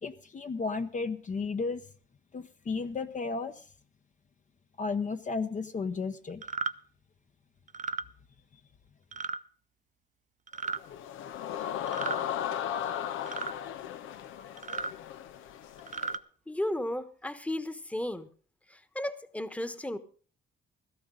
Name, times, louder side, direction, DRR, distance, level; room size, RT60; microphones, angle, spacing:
voice 1, 0.0-1.8 2.3-3.6 4.8-6.4, left 4 dB, 40° left, 8 dB, 0.9 m, -33 dB
sound 1, 6.4-6.7 7.7-8.0 9.1-9.4 10.5-10.8 11.9-12.2 13.3-13.5 14.6-14.9 15.8-16.2, right 5 dB, 40° right, 0.7 m, -34 dB
sound 2, 10.6-16.2, left 10 dB, 90° left, 0.9 m, -36 dB
voice 2, 16.5-18.3 18.7-20.0, left 1 dB, 5° left, 11 dB, 1.2 m, -34 dB
16.5 x 13.5 x 3.9 m, 0.42 s
cardioid pair, 90°, 20 cm